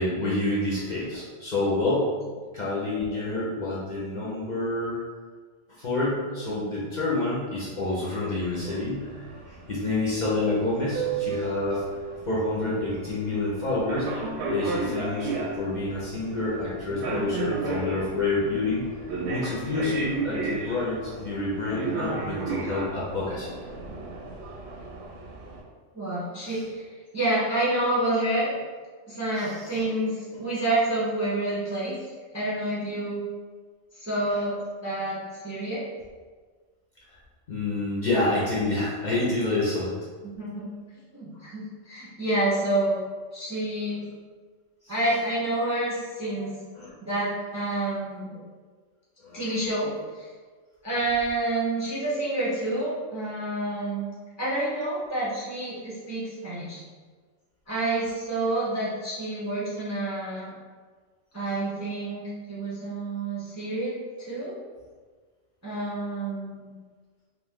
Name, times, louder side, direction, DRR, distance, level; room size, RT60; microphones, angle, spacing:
voice 1, 0.0-2.1 2.5-5.0 5.8-11.8 12.3-15.3 15.6-18.9 19.3-23.6 26.4-26.6 29.4-29.8 37.1-37.2 37.5-39.9 46.7-46.9 49.2-49.5, left 2 dB, 50° left, -7 dB, 0.6 m, -28 dB
sound 1, 8.3-25.6, right 3 dB, 70° right, 0.8 m, -34 dB
voice 2, 25.9-26.8 27.1-28.5 29.1-32.0 32.3-33.2 33.9-35.8 40.2-40.7 41.1-43.0 43.3-44.0 44.9-46.6 47.0-48.4 49.3-50.3 50.8-54.1 54.4-56.8 57.7-60.5 61.3-64.0 64.3-64.5 65.6-66.7, right 2 dB, 20° right, -8 dB, 0.4 m, -28 dB
2.5 x 2.4 x 3.5 m, 1.5 s
omnidirectional pair, 1.3 m